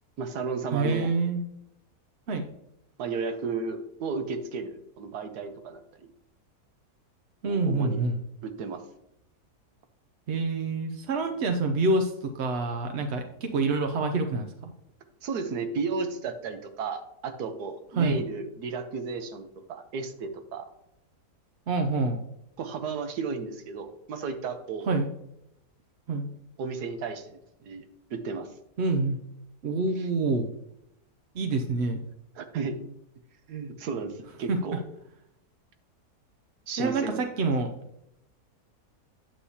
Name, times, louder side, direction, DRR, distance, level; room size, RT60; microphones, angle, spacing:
voice 1, 0.2-1.1 3.0-6.1 7.5-8.0 8.4-8.8 15.2-20.7 22.6-24.9 26.6-27.4 27.7-27.8 28.1-28.5 32.3-32.8 33.5-34.8 36.7-37.3, right 4 dB, 80° right, 8 dB, 1.4 m, -33 dB
voice 2, 0.7-1.4 2.3-2.4 7.4-8.2 10.3-14.7 18.0-18.2 21.7-22.2 24.9-25.1 26.1-26.3 28.8-29.2 29.6-30.5 31.3-32.0 34.5-34.6 36.8-37.7, right 3 dB, 60° right, 5 dB, 0.8 m, -27 dB
9.0 x 8.1 x 2.8 m, 0.81 s
omnidirectional pair, 1.7 m